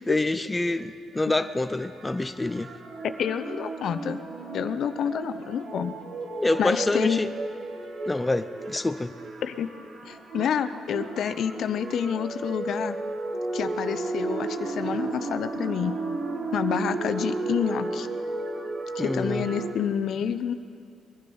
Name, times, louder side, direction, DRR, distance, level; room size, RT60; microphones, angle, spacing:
voice 1, 0.1-2.7 6.4-7.3 8.1-9.1 19.0-19.4, left 2 dB, 15° left, 10 dB, 0.5 m, -26 dB
sound 1, 0.8-19.7, right 2 dB, 55° right, 1.5 m, -34 dB
voice 2, 3.0-4.2 4.5-6.0 6.6-7.2 9.4-9.7 10.1-13.0 13.5-16.0 16.5-18.1 18.9-20.5, left 8 dB, 65° left, 11 dB, 0.7 m, -28 dB
22.0 x 11.5 x 5.5 m, 2.4 s
cardioid pair, 90°, 0 cm